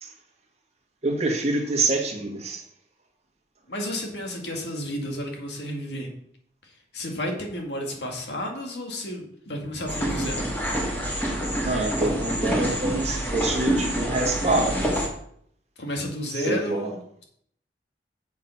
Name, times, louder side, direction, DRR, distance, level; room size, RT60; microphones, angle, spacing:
voice 1, 1.0-2.6 11.6-14.9 16.3-17.0, right 2 dB, 35° right, 2 dB, 1.6 m, -26 dB
voice 2, 3.7-6.1 6.9-10.4 15.8-17.2, equal, 70° left, 2 dB, 2.2 m, -32 dB
sound 1, 9.9-15.1, right 1 dB, 10° left, 1.7 m, -27 dB
7.1 x 7.0 x 5.9 m, 0.66 s
head